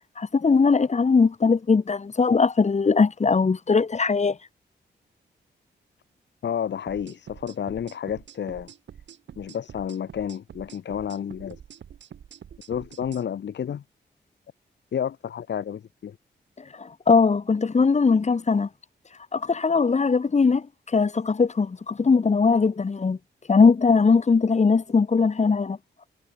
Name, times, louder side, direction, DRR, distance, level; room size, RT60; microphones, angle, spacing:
voice 1, 0.2-4.4 16.8-18.7 19.3-23.2 23.5-25.8, left 4 dB, 40° left, 1.6 m, -20 dB
voice 2, 6.4-8.7 9.4-11.6 12.7-13.8 14.9-16.2, left 8 dB, 75° left, 1.6 m, -30 dB
sound 1, 6.9-13.2, right 8 dB, 85° right, 5.1 m, -46 dB
cardioid pair, 85°, 18 cm